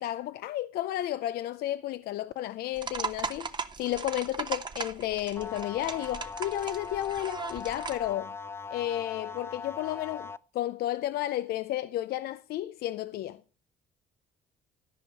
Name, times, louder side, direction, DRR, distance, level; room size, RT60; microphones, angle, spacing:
voice 1, 0.0-3.5 3.8-8.3 8.7-13.4, left 13 dB, 70° left, 0.5 m, -32 dB
sound 1, 2.8-8.1, right 4 dB, 25° right, 1.0 m, -37 dB
sound 2, 5.4-10.4, left 5 dB, 15° left, 0.4 m, -40 dB
13.5 x 5.2 x 6.4 m
cardioid pair, 110°, 17 cm